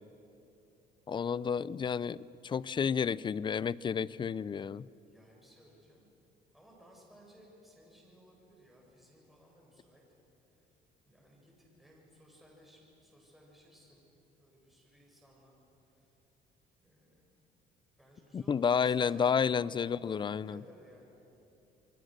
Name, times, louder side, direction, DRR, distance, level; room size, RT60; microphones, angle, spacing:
voice 1, 1.1-2.2 2.4-4.9 18.3-20.6, left 7 dB, 30° left, 20 dB, 0.4 m, -30 dB
voice 2, 5.0-6.1 6.5-10.0 10.5-10.7 11.0-14.1 14.4-15.6 15.8-16.1 16.8-17.4 18.0-21.0, equal, ahead, -3 dB, 7.8 m, -60 dB
28.0 x 23.0 x 6.6 m, 3.0 s
cardioid pair, 110°, 17 cm